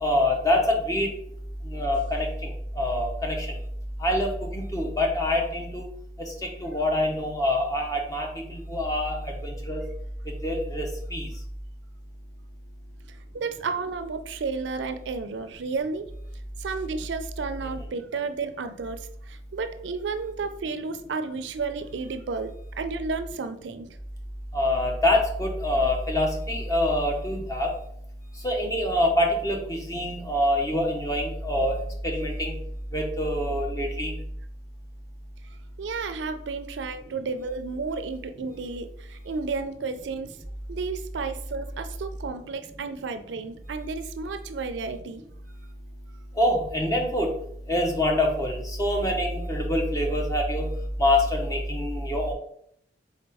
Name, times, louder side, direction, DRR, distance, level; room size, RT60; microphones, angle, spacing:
voice 1, 0.0-1.1 1.7-3.5 4.0-5.9 6.6-9.8 10.4-11.3 24.5-27.7 28.4-31.8 32.0-32.6 32.9-34.1 46.4-47.3 47.7-50.7 51.0-52.3, left 1 dB, 20° left, 1 dB, 0.7 m, -25 dB
voice 2, 13.1-16.1 16.6-24.0 35.4-40.3 40.7-45.2 49.5-49.7, right 4 dB, 80° right, 9 dB, 0.4 m, -32 dB
4.1 x 3.8 x 3.4 m, 0.69 s
head